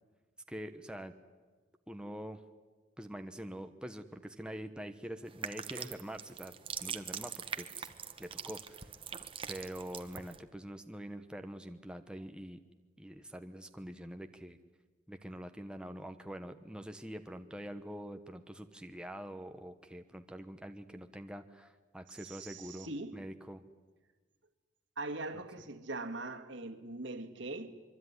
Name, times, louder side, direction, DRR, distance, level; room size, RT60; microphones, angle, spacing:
voice 1, 0.5-1.1 1.9-2.4 3.0-6.5 6.8-7.9 8.2-8.9 9.5-12.6 13.0-14.6 15.1-23.6, equal, 5° right, 1.0 m, -45 dB
sound 1, 5.3-10.4, right 7 dB, 30° right, 1.2 m, -43 dB
voice 2, 22.2-23.2 25.0-27.7, right 2 dB, 65° right, 2.2 m, -41 dB
24.5 x 24.0 x 9.8 m
head